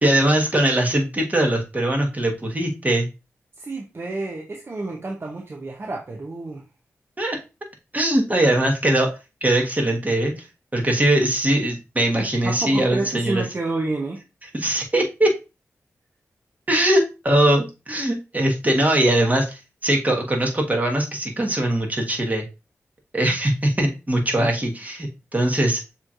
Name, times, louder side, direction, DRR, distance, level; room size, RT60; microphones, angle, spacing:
voice 1, 0.0-3.1 7.2-7.4 7.9-9.1 9.4-10.3 10.7-13.4 14.5-15.3 16.7-22.4 23.1-25.8, right 1 dB, 25° right, 1 dB, 1.5 m, -21 dB
voice 2, 3.6-6.6 12.4-14.2, right 2 dB, 45° right, 0 dB, 0.8 m, -29 dB
6.8 x 3.1 x 2.5 m, 0.28 s
cardioid pair, 55°, 6 cm